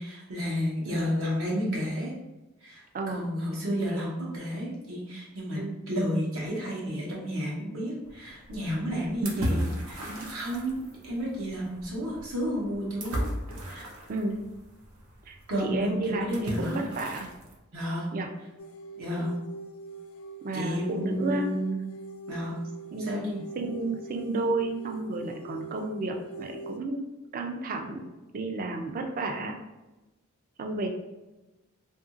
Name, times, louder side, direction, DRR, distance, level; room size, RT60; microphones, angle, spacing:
voice 1, 0.0-2.1 2.6-9.6 9.9-13.2 13.6-13.9 15.5-16.9 17.7-18.1 19.0-19.3 20.5-21.8 22.3-22.5 23.0-23.2, equal, 70° right, -4 dB, 1.0 m, -31 dB
voice 2, 2.9-3.3 5.5-5.8 9.2-9.7 10.0-10.3 14.1-14.4 15.3-17.3 18.1-18.3 20.4-21.5 22.9-27.0 27.3-28.0 28.3-29.6 30.6-30.9, right 2 dB, 40° right, 3 dB, 0.4 m, -32 dB
sound 1, 8.0-17.6, equal, 90° right, 0.6 m, -37 dB
sound 2, 18.6-26.8, right 2 dB, 70° left, 0.4 m, -43 dB
2.7 x 2.6 x 2.5 m, 1.1 s
head